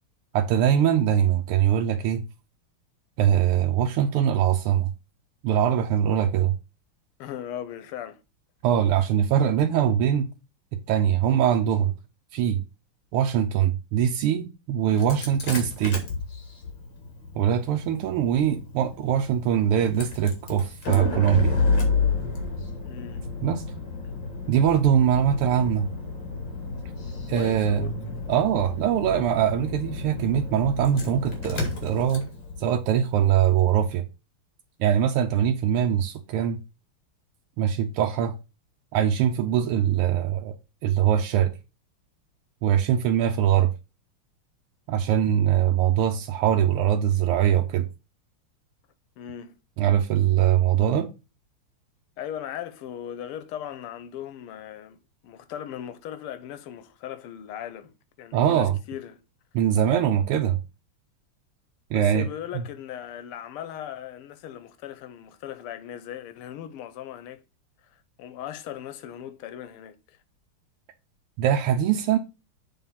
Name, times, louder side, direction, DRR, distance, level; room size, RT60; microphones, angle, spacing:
voice 1, 0.3-2.2 3.2-4.9 5.4-6.5 8.6-10.3 10.9-11.9 12.3-12.6 13.1-16.0 17.3-21.6 23.4-23.6 24.5-25.9 27.3-32.2 32.6-34.0 34.8-36.6 37.6-38.3 38.9-41.5 42.6-43.7 44.9-47.9 49.8-51.1 58.3-58.8 59.5-60.6 61.9-62.3 62.5-62.6 71.4-72.2, right 9 dB, 90° right, 1.7 m, -22 dB
voice 2, 7.2-8.2 22.8-23.3 27.3-28.0 49.2-49.5 52.2-55.0 55.2-59.2 61.9-67.4 67.9-70.2, left 10 dB, 90° left, 1.6 m, -38 dB
Engine starting, 14.9-33.8, left 4 dB, 60° left, 2.6 m, -31 dB
7.5 x 3.7 x 5.6 m
omnidirectional pair, 2.4 m